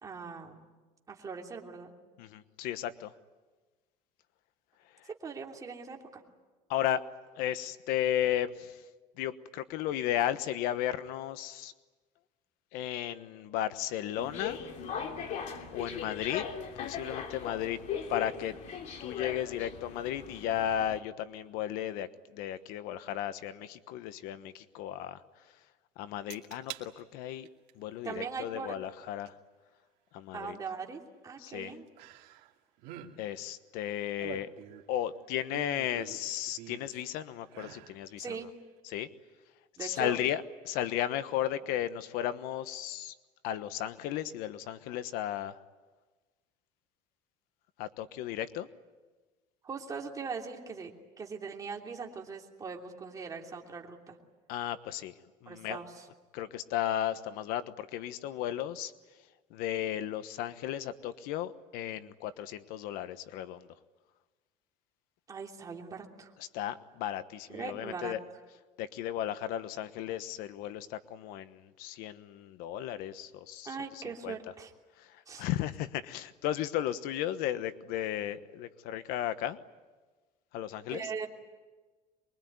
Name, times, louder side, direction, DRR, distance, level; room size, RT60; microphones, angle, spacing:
voice 1, 0.0-0.6 1.1-1.9 5.1-6.2 28.0-28.8 30.3-31.9 38.2-38.5 39.8-40.2 49.6-50.9 51.2-54.2 55.5-56.1 65.3-66.3 67.5-68.1 73.6-74.7 75.3-75.5 80.9-81.3, right 5 dB, 25° right, 1 dB, 3.0 m, -40 dB
voice 2, 2.2-3.1 6.7-7.0 7.4-8.8 9.2-11.7 12.7-14.6 15.7-16.4 16.7-17.8 18.1-18.5 19.0-22.1 22.3-25.2 26.0-27.5 27.8-29.3 30.1-30.6 31.4-31.7 33.2-34.5 34.9-38.4 38.8-39.1 39.8-43.1 43.4-45.6 47.8-48.7 54.5-55.1 55.4-55.8 56.3-58.9 59.5-63.7 66.4-68.2 68.8-74.3 75.0-79.6 80.5-81.1, left 11 dB, 75° left, 12 dB, 1.2 m, -34 dB
sound 1, 14.2-21.0, left 7 dB, 50° left, 2.9 m, -39 dB
sound 2, 26.3-26.9 27.3-27.7 29.3-29.4 32.0-32.5 32.8-33.1 33.9-35.0 35.5-37.0 37.5-38.0 38.4-38.5, right 12 dB, 75° right, 2.4 m, -46 dB
24.0 x 22.5 x 9.5 m, 1.3 s
cardioid pair, 150°, 15 cm